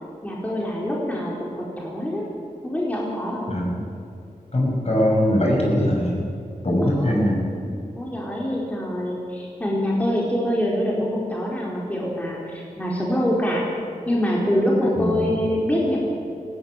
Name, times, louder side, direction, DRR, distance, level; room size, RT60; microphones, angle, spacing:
voice 1, 0.2-2.2 2.6-3.5 6.8-13.6 14.1-16.0, equal, 10° left, -4 dB, 4.4 m, -25 dB
voice 2, 3.5-3.8 4.5-6.2 6.6-7.4 15.0-15.3, equal, 45° left, -1 dB, 6.7 m, -21 dB
18.5 x 17.0 x 9.8 m, 2.5 s
wide cardioid pair, 75°, 14 cm